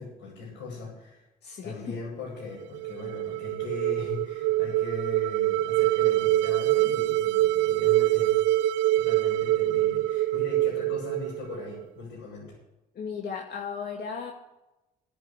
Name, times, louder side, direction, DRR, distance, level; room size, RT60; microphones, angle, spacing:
voice 1, 0.0-1.3 1.6-8.4 8.9-12.6, left 3 dB, 90° left, -8 dB, 7.1 m, -40 dB
voice 2, 1.4-1.7 13.0-14.3, left 6 dB, 60° left, 0 dB, 2.2 m, -35 dB
sound 1, 2.6-11.8, right 15 dB, 80° right, 0.5 m, -25 dB
12.0 x 10.5 x 8.3 m, 0.97 s
supercardioid pair, 70°, 19 cm